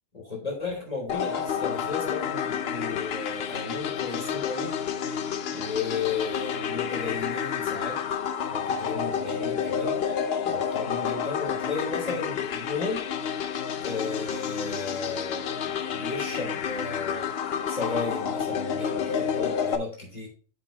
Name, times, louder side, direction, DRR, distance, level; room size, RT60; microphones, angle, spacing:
voice 1, 0.1-4.7 5.5-8.0 8.5-10.0 10.4-13.1 13.7-17.3 17.7-20.3, left 4 dB, 35° left, -1 dB, 3.4 m, -34 dB
sound 1, 1.1-19.8, left 7 dB, 60° left, 0.9 m, -30 dB
7.4 x 5.1 x 4.2 m, 0.39 s
omnidirectional pair, 1.2 m